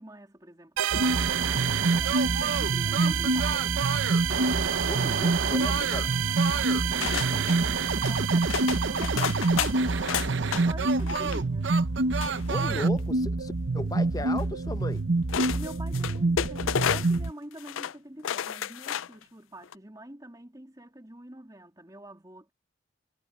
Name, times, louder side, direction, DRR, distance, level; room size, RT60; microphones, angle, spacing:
voice 1, 0.0-3.7 4.3-11.7 15.5-22.5, right 1 dB, 20° right, 2.9 m, -46 dB
sound 1, 0.8-10.1, right 13 dB, 85° right, 0.4 m, -31 dB
sound 2, 0.9-17.3, right 3 dB, 65° right, 0.8 m, -26 dB
voice 2, 4.9-6.1 12.5-15.0, left 1 dB, 20° left, 0.7 m, -36 dB
sound 3, 5.7-6.4 7.0-7.6 8.0-8.2 8.5-10.6 11.0-11.4 12.2-13.0 14.4-14.5 15.3-17.3 17.6-17.9 18.2-19.2 19.6-19.7, left 9 dB, 90° left, 0.4 m, -32 dB
head